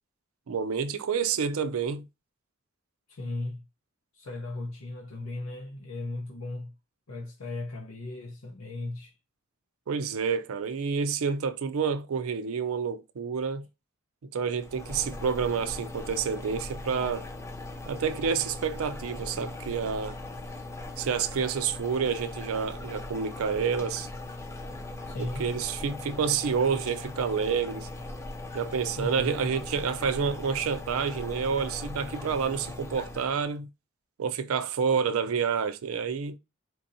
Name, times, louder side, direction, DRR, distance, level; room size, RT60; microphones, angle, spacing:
voice 1, 0.5-2.1 9.9-13.7 14.3-17.3 17.9-20.2 21.0-24.1 25.4-27.9 28.5-33.7 34.2-36.4, right 6 dB, 85° right, 0.4 m, -29 dB
voice 2, 3.1-3.6 4.1-6.7 7.1-9.1 24.7-24.8 25.1-25.6 29.0-29.3, left 2 dB, 80° left, 0.7 m, -36 dB
sound 1, 14.6-33.5, left 2 dB, 15° left, 0.3 m, -39 dB
4.4 x 2.7 x 2.6 m
head